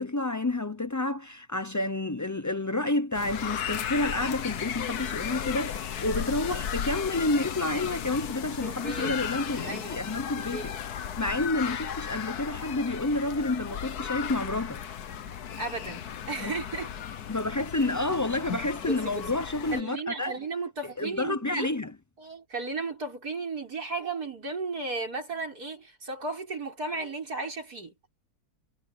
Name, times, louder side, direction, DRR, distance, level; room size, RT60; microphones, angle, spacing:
voice 1, 0.0-10.7 11.2-14.8 16.4-16.5 17.3-20.3 21.0-21.9, left 2 dB, 25° left, 0.3 m, -29 dB
sound 1, 3.1-19.8, left 8 dB, 75° left, 1.6 m, -35 dB
voice 2, 8.6-9.1 9.5-10.1 10.4-10.8 15.3-16.9 18.9-19.4 19.7-21.7 22.2-27.9, right 3 dB, 70° right, 6.8 m, -35 dB
omnidirectional pair, 1.7 m